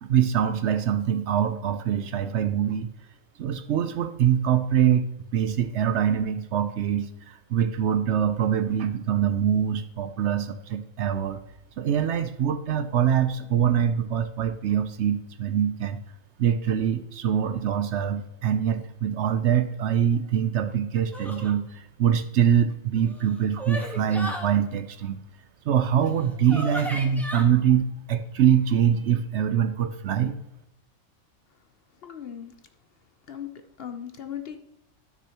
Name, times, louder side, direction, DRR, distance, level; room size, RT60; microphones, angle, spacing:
voice 1, 0.0-2.9 3.4-5.1 5.3-11.4 11.8-16.0 16.4-25.2 25.7-30.3, right 9 dB, 65° right, 9 dB, 0.8 m, -24 dB
sound 1, 21.1-21.5 22.9-24.5 26.0-26.1 26.5-27.4, equal, ahead, 1.1 m, -35 dB
voice 2, 32.0-32.5 33.3-33.5 33.8-34.6, left 9 dB, 55° left, 7 dB, 0.8 m, -37 dB
13.5 x 6.2 x 2.9 m, 0.90 s
omnidirectional pair, 1.4 m